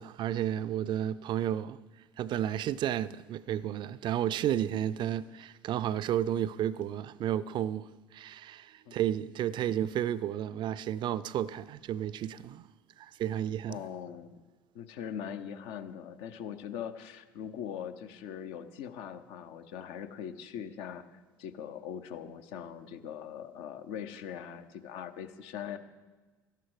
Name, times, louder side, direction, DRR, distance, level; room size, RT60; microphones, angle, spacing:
voice 1, 0.0-1.8 2.2-12.7 13.0-13.8, right 11 dB, 50° right, 0.4 m, -32 dB
voice 2, 13.7-14.4 14.7-25.8, left 8 dB, 65° left, 0.8 m, -41 dB
12.0 x 11.5 x 4.8 m
hypercardioid pair, 60°, 10 cm